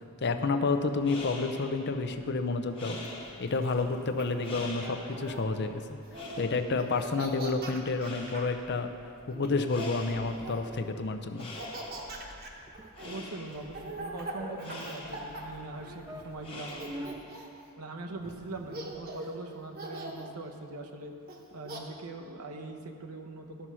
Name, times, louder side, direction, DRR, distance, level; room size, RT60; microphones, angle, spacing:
voice 1, 0.2-3.0 3.4-6.0 6.4-8.9 9.3-11.5, left 3 dB, 50° left, 8 dB, 0.6 m, -30 dB
sound 1, 1.0-17.5, left 1 dB, 25° left, 1.3 m, -46 dB
Laughter, 3.0-5.4 6.0-6.5 6.8-8.5 9.3-10.8 11.4-16.3 16.7-17.6 18.3-18.4 18.7-19.4 19.8-20.3 21.3-21.8, right 2 dB, 40° right, 1.1 m, -42 dB
sound 2, 12.7-12.9 13.5-14.6 15.3-15.4 15.7-15.8 16.0-17.2 18.0-19.1, equal, 20° right, 0.5 m, -47 dB
voice 2, 13.0-17.2 17.8-21.1 21.5-23.7, right 2 dB, 85° right, 3 dB, 0.9 m, -42 dB
12.5 x 5.6 x 6.1 m, 2.6 s
head